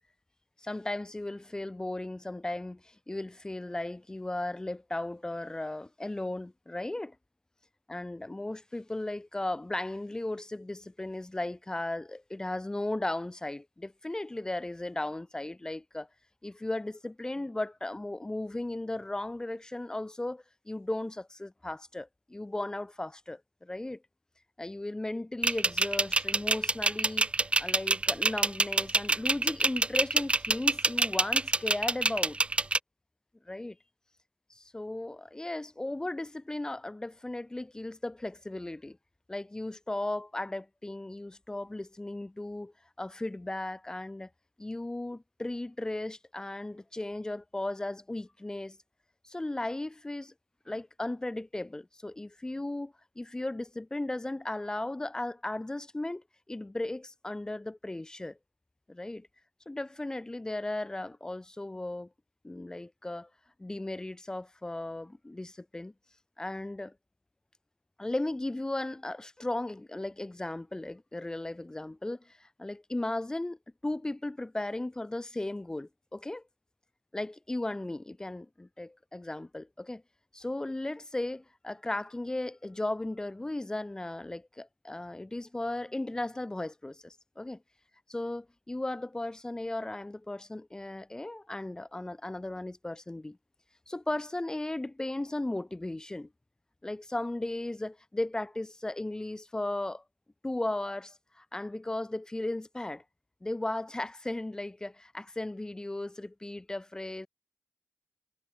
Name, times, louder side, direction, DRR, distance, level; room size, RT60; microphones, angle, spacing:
voice 1, 0.6-7.1 7.9-16.1 16.4-24.0 24.6-27.3 27.6-32.4 33.4-33.8 34.7-39.0 39.3-44.3 44.6-48.8 49.2-50.3 50.7-58.4 58.9-59.3 59.7-62.1 62.4-63.3 63.6-65.9 66.4-66.9 68.0-73.6 73.8-76.4 77.1-80.0 80.3-87.6 88.1-93.4 93.9-96.3 96.8-100.0 100.4-103.0 103.4-107.3, left 2 dB, 15° left, 3.2 m, -36 dB
sound 1, 25.4-32.8, right 3 dB, 20° right, 2.2 m, -25 dB
wide cardioid pair, 150°, 5 cm